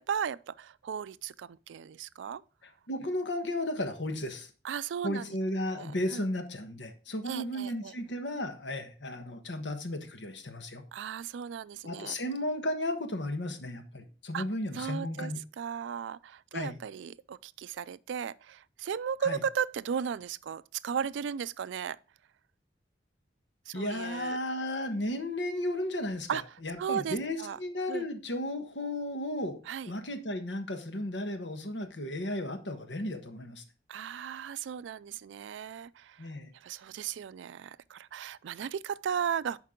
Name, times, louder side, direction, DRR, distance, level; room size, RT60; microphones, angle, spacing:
voice 1, 0.0-2.4 4.6-5.3 5.7-6.2 7.3-7.9 10.9-12.1 14.3-14.4 14.7-15.3 15.6-22.0 23.7-24.4 26.3-26.4 26.8-27.6 27.9-28.0 29.7-29.9 33.9-36.3 36.6-39.6, right 7 dB, 80° right, 0.3 m, -36 dB
voice 2, 2.9-4.5 5.0-10.8 11.8-15.4 16.5-16.8 19.2-19.4 23.7-26.3 26.6-29.6 29.8-33.6 36.2-36.5, left 1 dB, 75° left, 1.3 m, -34 dB
11.0 x 4.6 x 3.7 m
head